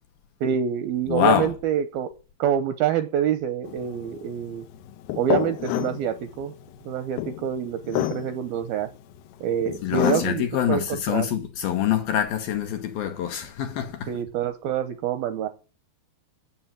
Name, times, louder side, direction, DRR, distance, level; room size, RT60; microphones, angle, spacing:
voice 1, 0.4-2.1 2.4-4.6 5.2-6.5 6.9-8.9 9.4-11.3 14.1-15.5, right 8 dB, 75° right, 2.3 m, -26 dB
voice 2, 1.1-1.5 9.8-14.1, left 10 dB, 70° left, 2.3 m, -25 dB
sound 1, 3.6-10.5, left 15 dB, 90° left, 2.1 m, -30 dB
10.0 x 7.9 x 9.1 m
omnidirectional pair, 5.3 m